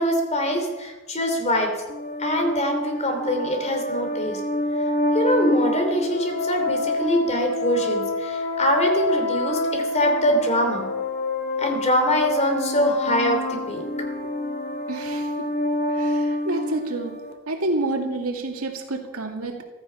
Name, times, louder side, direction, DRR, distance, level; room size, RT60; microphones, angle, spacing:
voice 1, 0.0-1.7 2.2-4.4 4.8-10.9 11.6-14.1, equal, 30° left, 4 dB, 2.9 m, -24 dB
sound 1, 1.9-17.3, left 2 dB, 45° left, 1.8 m, -27 dB
voice 2, 14.9-15.3 15.9-17.2 17.5-19.6, right 2 dB, 80° right, 3 dB, 2.2 m, -28 dB
15.0 x 14.0 x 5.6 m, 1.2 s
head